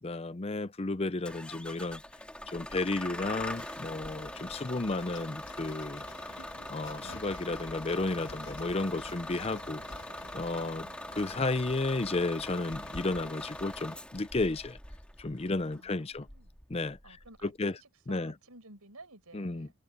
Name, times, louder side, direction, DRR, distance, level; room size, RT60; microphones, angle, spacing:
voice 1, 0.0-2.0 2.5-9.8 10.3-10.9 11.1-14.8 15.2-16.3 16.7-17.0 17.4-17.7 18.1-18.3 19.3-19.7, left 2 dB, 25° left, 0.5 m, -33 dB
Bus / Engine starting, 1.3-17.5, left 1 dB, 5° left, 1.8 m, -43 dB
sound 1, 3.1-14.0, left 2 dB, 55° left, 1.5 m, -50 dB
voice 2, 15.7-16.5 17.0-19.7, right 2 dB, 90° right, 6.3 m, -54 dB
head